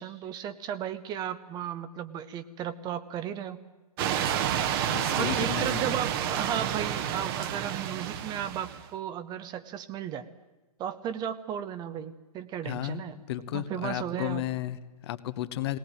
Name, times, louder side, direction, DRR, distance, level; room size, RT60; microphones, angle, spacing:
voice 1, 0.0-3.6 4.0-4.2 5.1-10.3 10.8-13.2 13.5-14.4, right 9 dB, 20° right, 12 dB, 0.8 m, -35 dB
sound 1, 4.0-8.9, right 10 dB, 35° right, 1.2 m, -30 dB
voice 2, 4.9-6.0 12.6-13.0 13.3-15.8, left 13 dB, 40° left, 13 dB, 1.0 m, -33 dB
20.0 x 18.5 x 9.0 m, 1.1 s
figure-of-eight pair, 120°, 20 cm